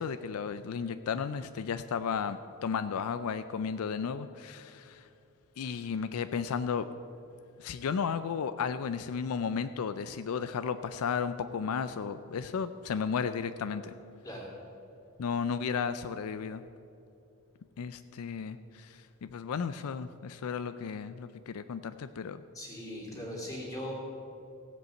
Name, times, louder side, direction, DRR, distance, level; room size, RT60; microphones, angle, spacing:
voice 1, 0.0-5.1 5.6-6.9 7.6-13.9 15.2-16.6 17.8-22.4, left 6 dB, 80° left, 11 dB, 0.4 m, -34 dB
voice 2, 22.5-23.9, equal, 15° left, -3 dB, 2.7 m, -39 dB
16.0 x 5.4 x 7.7 m, 2.7 s
head